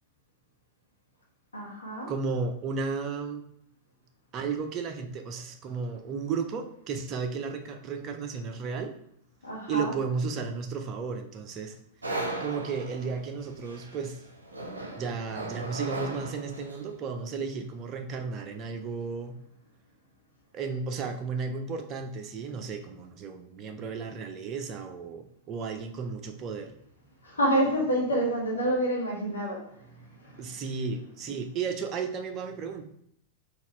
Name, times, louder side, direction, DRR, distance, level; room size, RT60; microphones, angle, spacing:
voice 1, 1.5-2.1 9.4-9.9 27.2-29.6 30.2-30.6, right 1 dB, 80° left, -2 dB, 1.0 m, -28 dB
voice 2, 2.1-3.4 4.3-8.9 9.7-11.8 12.4-14.2 15.0-19.3 20.5-26.7 30.4-32.8, right 5 dB, 35° right, 6 dB, 0.6 m, -33 dB
sound 1, 12.0-17.0, right 2 dB, 85° right, 0.6 m, -37 dB
4.1 x 2.5 x 4.4 m, 0.72 s
figure-of-eight pair, 95°, 0 cm